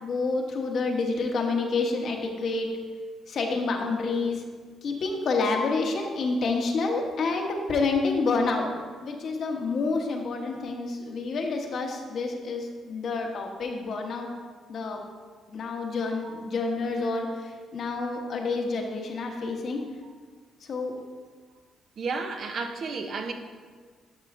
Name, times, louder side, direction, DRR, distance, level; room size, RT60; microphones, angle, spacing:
voice 1, 0.0-2.8 3.3-4.4 4.8-8.7 9.0-14.3 14.7-15.0 15.5-19.8 20.7-20.9, left 3 dB, 60° left, 2 dB, 1.0 m, -28 dB
voice 2, 22.0-23.3, right 4 dB, 60° right, 5 dB, 0.7 m, -32 dB
11.0 x 5.5 x 2.6 m, 1.5 s
cardioid pair, 90°, 0 cm